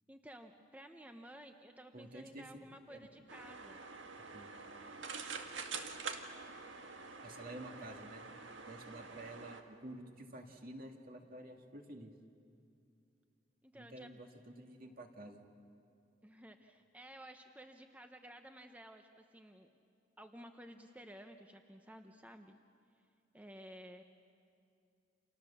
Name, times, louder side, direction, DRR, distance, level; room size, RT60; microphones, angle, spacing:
voice 1, 0.1-3.8 13.6-14.1 16.2-19.7 20.2-22.6 23.3-24.0, equal, 10° right, 5 dB, 0.9 m, -54 dB
voice 2, 1.9-2.4 2.9-3.1 4.3-4.5 7.2-8.2 8.7-12.1 13.7-15.4, right 1 dB, 50° right, 3 dB, 2.3 m, -50 dB
sound 1, 3.3-9.6, right 5 dB, 85° right, 1.9 m, -46 dB
29.5 x 27.5 x 7.1 m, 2.5 s
head